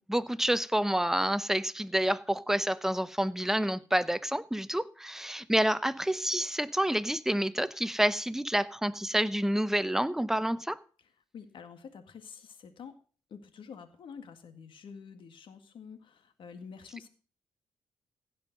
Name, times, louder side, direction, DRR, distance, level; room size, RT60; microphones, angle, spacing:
voice 1, 0.1-10.8, right 1 dB, 5° right, 0.8 m, -28 dB
voice 2, 11.3-13.0 13.3-17.1, left 6 dB, 70° left, 1.8 m, -48 dB
16.0 x 5.5 x 6.6 m
cardioid pair, 65°, 9 cm